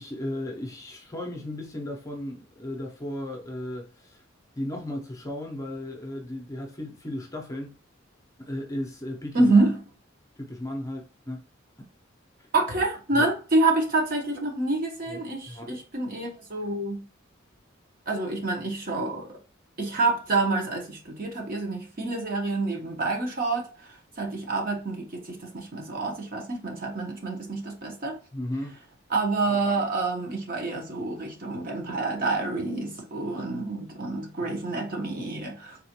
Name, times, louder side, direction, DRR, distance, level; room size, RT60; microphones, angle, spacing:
voice 1, 0.0-4.2 4.6-7.8 8.4-9.5 10.4-11.4 13.1-13.3 15.1-15.2 15.5-15.7 28.3-28.8, left 1 dB, 15° left, 0.7 m, -35 dB
voice 2, 9.3-9.8 12.5-17.0 18.1-19.4 19.8-23.7 24.2-28.1 29.1-35.8, right 2 dB, 45° right, 1.0 m, -27 dB
4.0 x 2.4 x 2.8 m
head